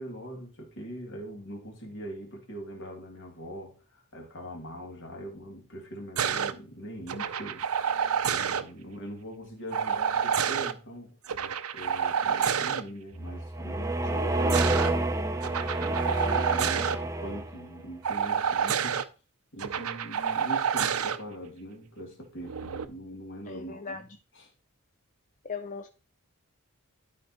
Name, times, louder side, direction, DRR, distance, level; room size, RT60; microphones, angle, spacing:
voice 1, 0.0-11.2 11.7-15.4 15.8-19.0 19.5-24.1 24.3-24.5, right 1 dB, 55° left, 2.3 m, -42 dB
sound 1, 6.2-6.5 7.1-8.6 9.7-10.7 11.3-12.8 14.1-14.9 15.4-17.0 18.0-19.0 19.6-21.2 22.5-22.8, right 7 dB, 80° right, 0.6 m, -28 dB
sound 2, 13.1-17.8, right 2 dB, 15° right, 0.6 m, -29 dB
voice 2, 23.5-24.0 25.4-25.9, left 5 dB, 35° left, 0.5 m, -38 dB
12.0 x 4.6 x 4.2 m
head